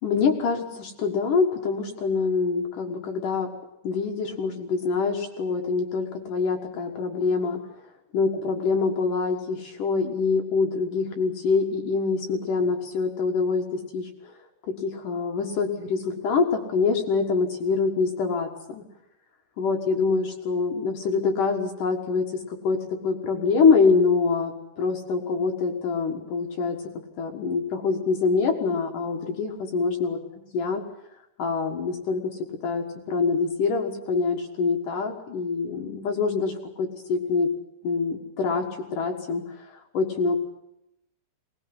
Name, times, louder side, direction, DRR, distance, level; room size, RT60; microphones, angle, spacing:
voice 1, 0.0-3.5 3.8-7.8 8.1-14.3 14.6-18.8 19.6-26.8 27.2-30.2 30.5-30.8 31.4-37.5 37.8-40.4, left 4 dB, 60° left, 2 dB, 2.3 m, -25 dB
21.0 x 19.0 x 9.8 m, 0.84 s
omnidirectional pair, 6.0 m